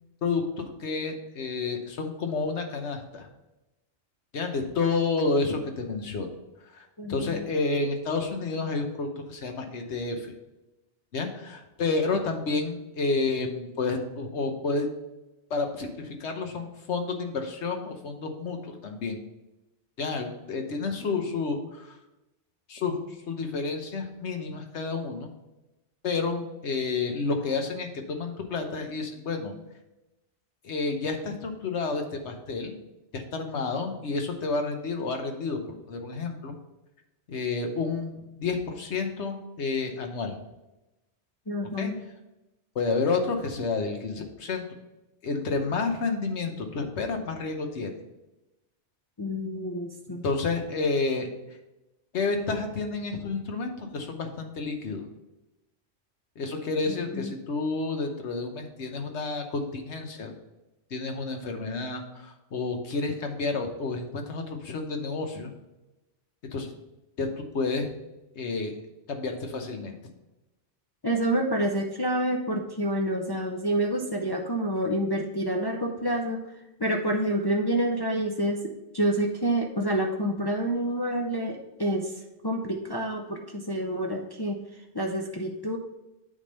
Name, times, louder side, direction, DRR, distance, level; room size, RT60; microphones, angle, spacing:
voice 1, 0.2-3.3 4.3-6.3 6.7-10.3 11.1-14.9 15.5-19.2 20.0-22.0 22.7-23.0 23.3-25.3 26.0-29.5 30.6-32.8 33.1-35.6 35.9-36.5 37.3-40.3 41.8-41.9 42.7-44.6 45.2-47.9 50.1-51.3 52.1-55.1 56.4-60.3 60.9-65.5 66.5-66.7 67.2-67.9 68.4-68.7 69.1-70.0, left 4 dB, 75° left, 5 dB, 1.3 m, -30 dB
voice 2, 7.0-7.4 12.1-12.2 41.5-42.0 49.2-50.2 56.9-57.3 71.0-76.4 76.8-82.1 82.4-84.6 84.9-85.8, right 1 dB, 30° left, 1 dB, 0.5 m, -28 dB
8.8 x 3.4 x 5.4 m, 0.98 s
omnidirectional pair, 1.2 m